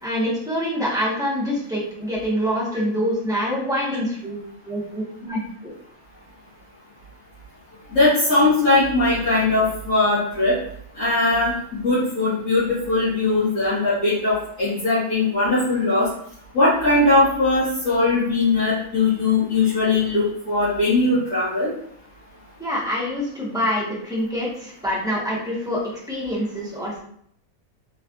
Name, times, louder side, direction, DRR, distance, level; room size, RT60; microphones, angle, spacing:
voice 1, 0.0-4.4 4.7-5.7 22.6-27.0, equal, 5° right, -6 dB, 1.0 m, -25 dB
voice 2, 7.9-10.6 11.0-16.1 16.5-21.7, left 2 dB, 70° left, -14 dB, 2.0 m, -20 dB
4.2 x 3.3 x 2.4 m, 0.67 s
omnidirectional pair, 1.5 m